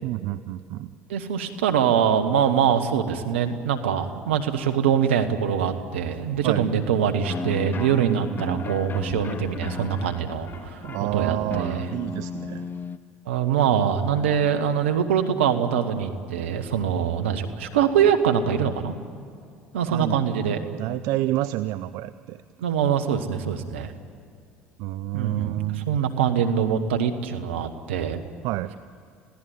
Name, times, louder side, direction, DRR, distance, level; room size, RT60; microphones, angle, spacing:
voice 1, 0.0-0.9 6.4-6.7 7.9-8.7 10.8-12.7 19.9-20.2 20.7-22.4 24.8-26.0 28.4-28.7, right 16 dB, 60° right, 12 dB, 0.6 m, -29 dB
voice 2, 1.1-10.8 11.1-11.9 13.3-18.9 19.7-20.6 22.6-23.9 25.1-28.2, right 8 dB, 80° right, 6 dB, 1.5 m, -23 dB
sound 1, 7.2-13.0, left 5 dB, 35° left, 0.9 m, -35 dB
26.5 x 16.5 x 9.4 m, 2.2 s
hypercardioid pair, 65°, 6 cm